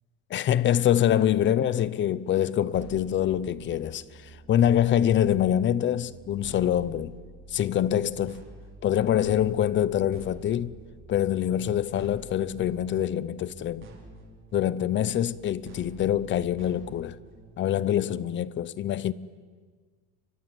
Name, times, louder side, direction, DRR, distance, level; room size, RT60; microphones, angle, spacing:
voice 1, 0.3-7.1 7.5-8.4 8.8-10.7 11.1-13.9 14.5-17.2 17.6-19.1, left 10 dB, 30° left, 0.7 m, -25 dB
sound 1, 2.7-17.5, right 3 dB, 30° right, 4.1 m, -48 dB
30.0 x 23.5 x 7.9 m
cardioid pair, 165°, 36 cm